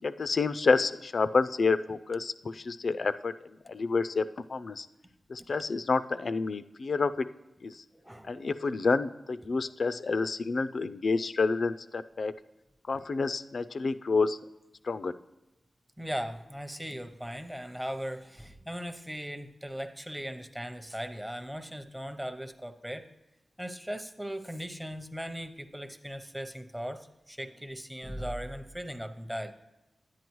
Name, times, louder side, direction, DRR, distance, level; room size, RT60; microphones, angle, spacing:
voice 1, 0.0-2.3 2.7-3.3 3.7-4.9 5.3-7.1 7.6-7.7 8.3-12.3 12.9-14.4 14.9-15.1, left 4 dB, 65° left, 12 dB, 0.3 m, -28 dB
voice 2, 7.9-8.4 9.4-9.7 12.9-13.1 16.0-23.0 23.6-29.5, equal, 5° right, 8 dB, 0.6 m, -38 dB
10.0 x 9.2 x 3.1 m, 1.0 s
wide cardioid pair, 80°, 0 cm